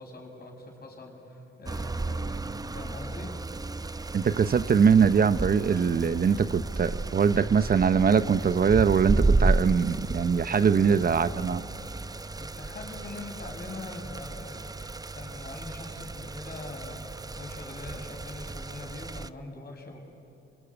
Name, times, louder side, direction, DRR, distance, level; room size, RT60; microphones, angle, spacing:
voice 1, 0.0-2.4 2.7-3.4 10.7-11.2 12.4-17.0 17.3-20.0, left 2 dB, 50° left, 1 dB, 6.7 m, -43 dB
sound 1, 1.7-19.3, right 2 dB, 20° right, 0.7 m, -32 dB
voice 2, 4.1-11.6, right 6 dB, 45° right, 13 dB, 0.8 m, -22 dB
27.0 x 21.5 x 9.8 m, 2.6 s
cardioid pair, 75°, 21 cm